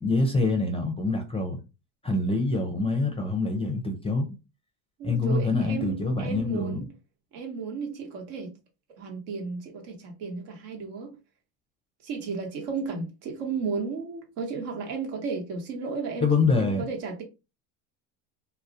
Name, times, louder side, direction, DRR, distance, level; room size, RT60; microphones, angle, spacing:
voice 1, 0.0-1.6 2.0-4.3 5.0-6.8 16.2-16.9, left 3 dB, 15° left, 0.5 m, -25 dB
voice 2, 5.0-6.9 7.3-8.5 9.0-11.1 12.0-16.3 16.6-17.2, right 4 dB, 65° right, 1.1 m, -34 dB
2.3 x 2.0 x 2.6 m
hypercardioid pair, 85°, 45 cm